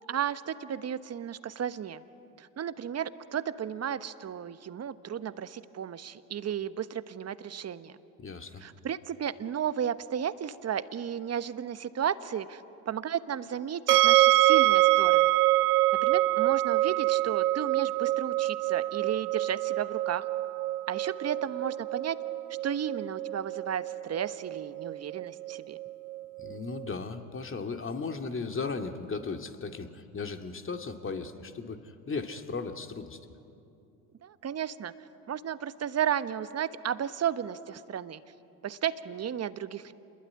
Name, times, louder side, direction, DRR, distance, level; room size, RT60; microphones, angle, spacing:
voice 1, 0.0-2.0 2.4-8.0 8.6-15.3 15.9-20.3 20.9-22.2 22.6-25.8 34.2-34.9 35.3-38.2 38.6-39.9, right 9 dB, 35° right, 13 dB, 1.2 m, -33 dB
voice 2, 8.2-8.6 26.4-33.2, left 4 dB, 25° left, 5 dB, 2.3 m, -36 dB
sound 1, 13.9-26.9, right 17 dB, 90° right, 0.7 m, -26 dB
28.0 x 21.5 x 9.8 m, 2.7 s
hypercardioid pair, 75°, 45 cm